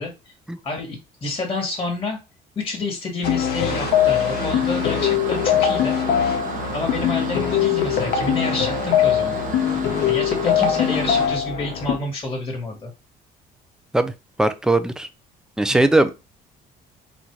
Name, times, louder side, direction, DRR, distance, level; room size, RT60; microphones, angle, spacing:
voice 1, 0.0-0.3 0.6-2.2 2.5-6.2 6.7-9.4 10.1-12.9 15.7-16.0, left 3 dB, 25° left, 1.5 m, -29 dB
sound 1, 3.2-12.0, left 9 dB, 70° left, 0.9 m, -21 dB
sound 2, 3.7-11.3, right 6 dB, 50° right, 0.8 m, -33 dB
voice 2, 14.4-15.1 15.6-16.1, right 2 dB, 5° right, 0.5 m, -19 dB
4.1 x 2.5 x 4.5 m
cardioid pair, 110°, 17 cm